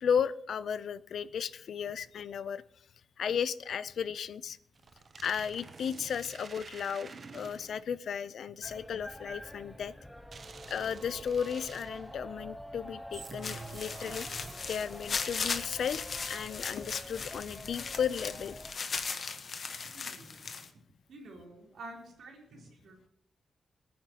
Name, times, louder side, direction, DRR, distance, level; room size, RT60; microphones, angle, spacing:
voice 1, 0.0-2.6 3.2-4.6 5.2-9.9 10.7-14.3 14.7-18.6, left 7 dB, 75° left, 16 dB, 0.5 m, -34 dB
sound 1, 4.8-7.9 10.3-12.1 13.1-14.9, right 4 dB, 40° right, 0.7 m, -48 dB
sound 2, 8.6-18.7, equal, ahead, 0.8 m, -47 dB
sound 3, 13.4-20.7, left 5 dB, 45° left, 1.1 m, -38 dB
voice 2, 19.9-20.5 21.1-23.1, right 2 dB, 80° right, -1 dB, 3.6 m, -49 dB
24.5 x 9.5 x 2.9 m, 0.73 s
wide cardioid pair, 155°, 0 cm